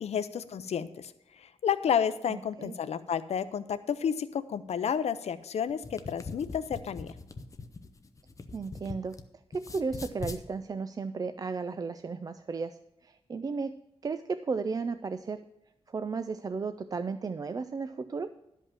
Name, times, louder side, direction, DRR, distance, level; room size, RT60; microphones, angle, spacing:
voice 1, 0.0-1.1 1.4-7.1, left 8 dB, 80° left, 12 dB, 0.5 m, -31 dB
voice 2, 2.3-2.7 8.5-9.2 9.5-13.7 14.0-15.4 15.9-18.3, right 4 dB, 35° right, 11 dB, 0.4 m, -34 dB
sound 1, 5.7-9.2 9.5-10.4, left 3 dB, 30° left, 0.7 m, -42 dB
12.0 x 5.4 x 7.4 m, 0.87 s
wide cardioid pair, 175°, 11 cm